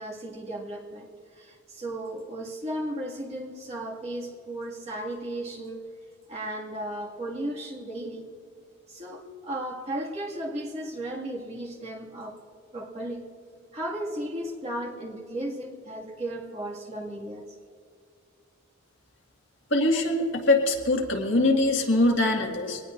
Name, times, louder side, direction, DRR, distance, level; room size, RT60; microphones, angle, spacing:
voice 1, 0.0-5.9 6.3-8.3 8.9-12.4 12.7-13.3 13.7-17.6, right 1 dB, 30° right, -3 dB, 2.1 m, -35 dB
voice 2, 19.7-22.8, left 2 dB, 60° left, 1 dB, 1.9 m, -23 dB
23.0 x 19.0 x 2.6 m, 2.4 s
head